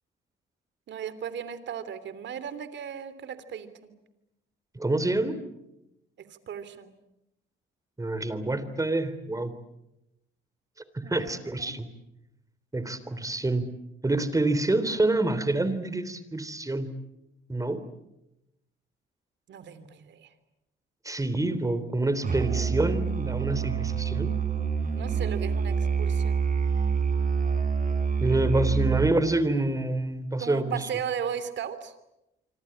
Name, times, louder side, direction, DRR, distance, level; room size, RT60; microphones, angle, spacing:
voice 1, 0.9-3.9 6.2-6.9 11.0-11.7 19.5-20.3 24.9-26.4 30.4-31.9, right 8 dB, 65° right, 13 dB, 3.3 m, -36 dB
voice 2, 4.7-5.4 8.0-9.5 10.9-11.9 12.7-13.7 14.0-16.9 17.5-17.8 21.0-24.3 28.2-30.8, right 2 dB, 15° right, 13 dB, 3.4 m, -27 dB
Musical instrument, 22.2-29.3, right 6 dB, 40° right, 5.1 m, -27 dB
26.0 x 26.0 x 8.8 m, 0.88 s
cardioid pair, 90°, 20 cm